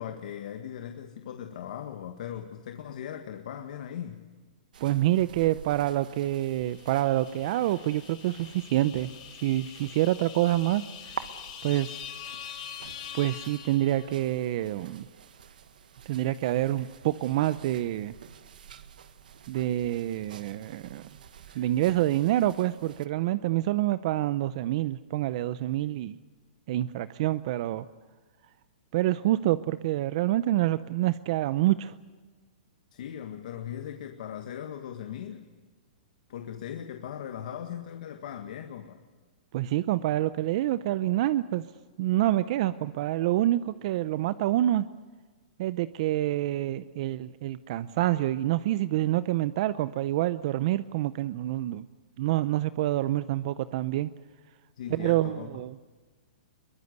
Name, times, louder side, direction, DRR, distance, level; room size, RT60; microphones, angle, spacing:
voice 1, 0.0-4.2 32.9-35.5 36.3-39.0 54.8-55.6, left 9 dB, 65° left, 6 dB, 1.7 m, -39 dB
sound 1, 4.7-23.1, right 8 dB, 80° right, 1.6 m, -49 dB
voice 2, 4.8-9.1 9.4-11.2 11.6-12.0 13.1-15.1 16.1-18.2 19.5-21.1 21.6-26.2 26.7-27.8 28.9-32.0 39.5-41.6 42.0-44.9 45.6-51.8 52.2-54.1 54.9-55.7, right 14 dB, 50° right, 14 dB, 0.6 m, -27 dB
sound 2, 6.4-14.4, left 8 dB, 50° left, 5.4 m, -44 dB
22.5 x 21.5 x 8.1 m, 1.3 s
hypercardioid pair, 145°, 5 cm